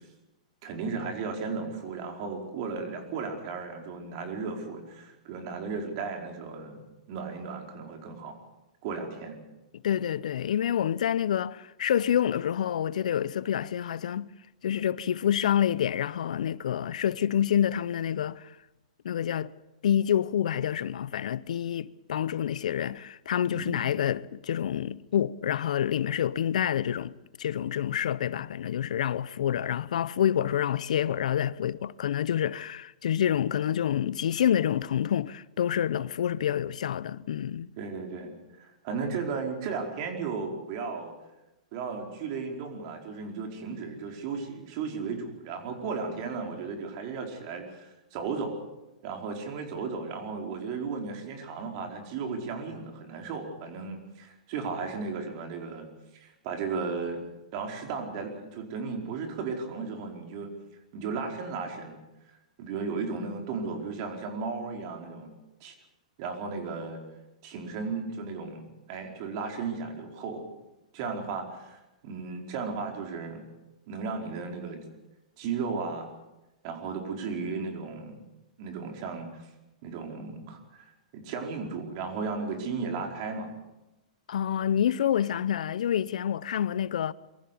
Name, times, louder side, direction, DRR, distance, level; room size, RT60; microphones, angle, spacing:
voice 1, 0.6-8.3 8.8-9.4 23.5-23.9 37.8-38.3 38.6-41.1 41.7-48.6 49.0-55.9 56.1-57.2 57.5-60.5 60.9-62.0 62.6-65.3 65.6-65.7 66.2-67.0 67.4-70.4 70.9-73.4 73.9-74.8 75.4-76.1 76.6-78.2 78.6-79.5 79.8-83.5, right 4 dB, 50° right, 4.8 m, -35 dB
voice 2, 9.8-14.3 14.6-18.5 19.0-19.5 19.8-37.7 84.3-87.1, left 9 dB, 75° left, 0.7 m, -27 dB
23.5 x 15.0 x 8.5 m
hypercardioid pair, 125°, 4 cm